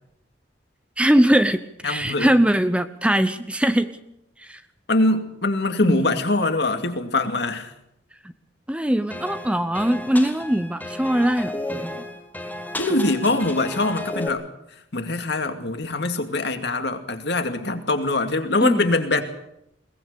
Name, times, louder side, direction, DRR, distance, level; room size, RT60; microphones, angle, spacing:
voice 1, 1.0-3.9 4.4-4.6 5.8-6.2 8.7-12.0 18.6-18.8, right 1 dB, 5° right, 11 dB, 0.7 m, -21 dB
voice 2, 1.8-2.3 4.9-7.7 12.8-14.5 14.9-19.2, left 2 dB, 60° left, 6 dB, 2.4 m, -23 dB
sound 1, 9.1-14.3, left 1 dB, 10° left, 1.9 m, -33 dB
21.5 x 19.5 x 6.9 m, 0.79 s
head